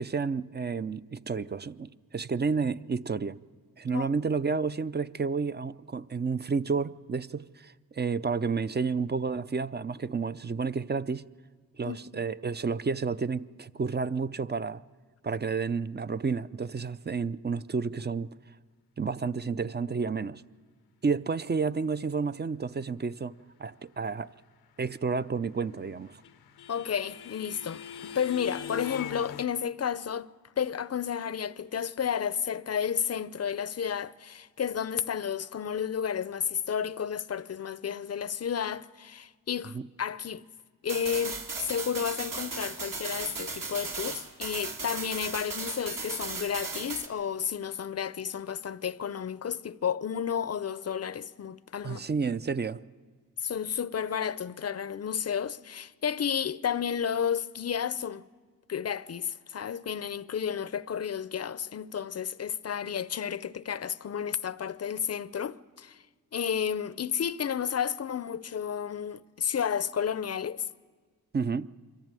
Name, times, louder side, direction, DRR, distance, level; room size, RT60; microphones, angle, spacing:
voice 1, 0.0-3.4 3.8-11.2 11.8-14.8 15.2-18.3 19.0-20.4 21.0-24.3 24.8-26.2 39.7-39.8 51.8-52.8 71.3-71.7, right 5 dB, 30° right, 0.5 m, -31 dB
sound 1, 25.6-29.4, left 9 dB, 90° left, 0.8 m, -41 dB
voice 2, 26.7-30.3 30.6-40.4 40.8-52.0 53.4-58.2 58.7-66.0 66.3-70.7, left 8 dB, 45° left, 0.6 m, -32 dB
sound 2, 40.9-47.1, right 4 dB, 60° right, 2.2 m, -36 dB
23.5 x 14.5 x 9.0 m
cardioid pair, 65°, 37 cm